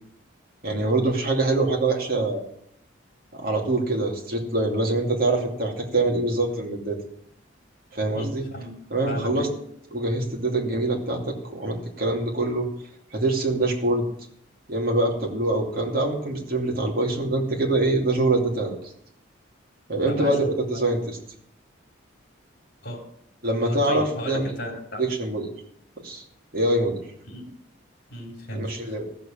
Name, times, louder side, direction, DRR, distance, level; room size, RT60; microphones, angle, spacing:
voice 1, 0.6-2.4 3.3-7.0 7.9-8.4 8.9-9.5 9.9-12.7 13.1-14.0 14.7-18.8 19.9-21.2 23.4-24.5 25.0-25.5 26.0-26.2 26.5-27.0 28.5-29.1, right 2 dB, 50° right, 0 dB, 2.6 m, -24 dB
voice 2, 8.1-8.7 9.1-9.6 20.1-20.8 22.8-23.0 23.6-25.1 27.3-27.5 28.1-29.0, equal, 50° left, 1 dB, 3.6 m, -35 dB
14.5 x 7.0 x 7.4 m, 0.72 s
head